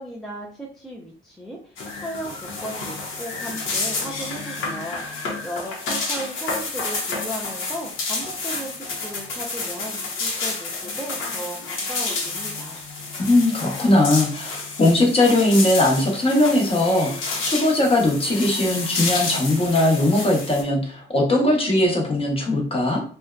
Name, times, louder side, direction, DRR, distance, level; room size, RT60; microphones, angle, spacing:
voice 1, 0.0-12.8, right 1 dB, ahead, -3 dB, 0.5 m, -36 dB
sound 1, 1.8-20.6, left 3 dB, 80° left, 0.8 m, -30 dB
voice 2, 13.2-23.0, left 1 dB, 30° left, 0 dB, 0.9 m, -19 dB
2.6 x 2.1 x 2.3 m, 0.42 s
cardioid pair, 90°, 20 cm